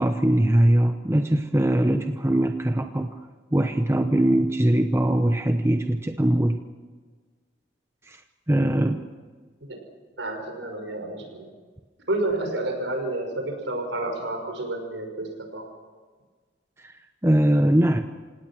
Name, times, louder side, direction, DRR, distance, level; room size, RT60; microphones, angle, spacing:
voice 1, 0.0-3.2 3.5-6.6 8.0-8.2 8.5-9.0 16.8-16.9 17.2-18.0, right 1 dB, 15° right, 6 dB, 0.8 m, -21 dB
voice 2, 10.2-11.5 12.1-15.7, right 2 dB, 85° right, 3 dB, 5.7 m, -30 dB
28.0 x 18.0 x 6.2 m, 1.5 s
head